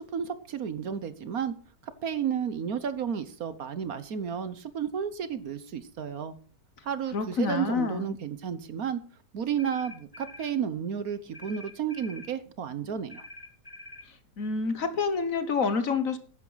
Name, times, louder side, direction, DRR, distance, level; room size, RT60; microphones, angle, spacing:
voice 1, 0.0-1.5 2.0-6.3 6.8-9.0 9.3-13.3, right 7 dB, 60° right, 13 dB, 1.4 m, -32 dB
voice 2, 7.1-8.1 14.4-16.2, left 5 dB, 55° left, 11 dB, 1.5 m, -28 dB
sound 1, 9.6-10.6 11.3-12.3 13.1-14.1, left 2 dB, 15° left, 1.7 m, -46 dB
14.5 x 11.0 x 4.0 m, 0.41 s
omnidirectional pair, 1.8 m